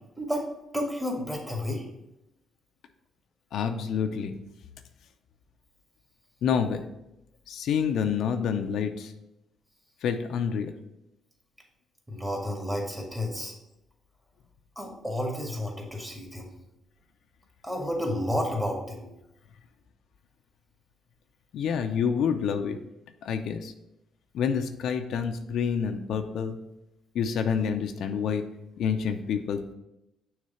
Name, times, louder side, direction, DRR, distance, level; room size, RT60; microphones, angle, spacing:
voice 1, 0.7-1.8 12.1-13.5 14.8-16.5 17.6-19.1, left 1 dB, 10° right, 0 dB, 1.8 m, -31 dB
voice 2, 3.5-4.4 6.4-6.8 7.5-9.1 10.0-10.7 21.5-22.8 23.2-23.7 24.3-26.6 27.1-28.4 28.8-29.7, left 7 dB, 75° left, 7 dB, 0.5 m, -28 dB
6.3 x 3.3 x 5.6 m, 0.89 s
cardioid pair, 90°, 0 cm